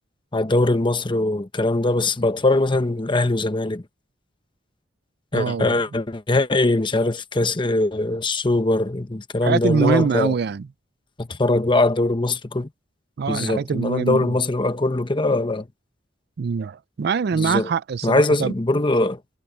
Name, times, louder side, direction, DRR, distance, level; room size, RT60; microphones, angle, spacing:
voice 1, 0.3-3.8 5.3-10.3 11.2-12.7 13.3-15.7 17.3-17.7 18.0-19.2, left 2 dB, 25° left, 0.9 m, -21 dB
voice 2, 5.3-5.8 9.4-10.7 13.2-14.4 16.4-18.5, right 5 dB, 60° right, 0.4 m, -23 dB
head